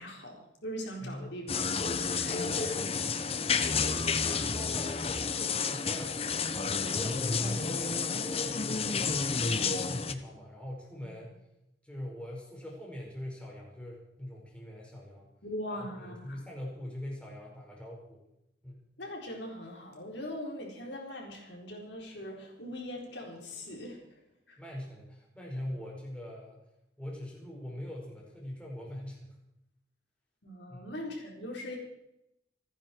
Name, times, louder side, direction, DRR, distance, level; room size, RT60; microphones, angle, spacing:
voice 1, 0.0-3.2 4.3-4.5 7.4-7.5 15.4-16.5 19.0-24.2 24.5-24.6 30.4-31.8, equal, 70° left, 0 dB, 4.3 m, -41 dB
voice 2, 1.0-1.3 4.2-6.5 6.8-11.4 11.8-15.3 15.7-18.2 18.6-18.8 24.6-26.6 27.0-29.3 30.7-30.9, left 1 dB, 5° left, -3 dB, 5.0 m, -42 dB
sound 1, 1.5-10.1, left 5 dB, 30° left, 0.9 m, -30 dB
28.5 x 10.0 x 4.6 m, 0.85 s
head